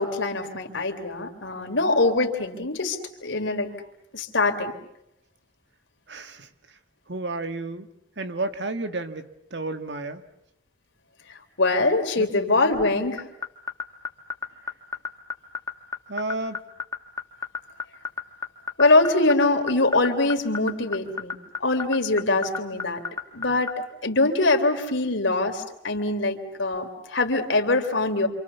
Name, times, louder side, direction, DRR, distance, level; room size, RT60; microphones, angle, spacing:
voice 1, 0.0-3.7 4.1-4.7 11.6-13.3 18.8-21.4 21.6-23.0 23.3-23.7 24.0-28.3, left 2 dB, 85° left, 4 dB, 3.5 m, -23 dB
voice 2, 6.1-6.5 7.1-7.9 8.2-10.2 12.2-12.3 16.1-16.6, right 2 dB, 70° right, 8 dB, 1.7 m, -31 dB
sound 1, 13.2-23.7, left 5 dB, 20° left, 1.5 m, -29 dB
28.0 x 27.0 x 7.0 m, 0.80 s
head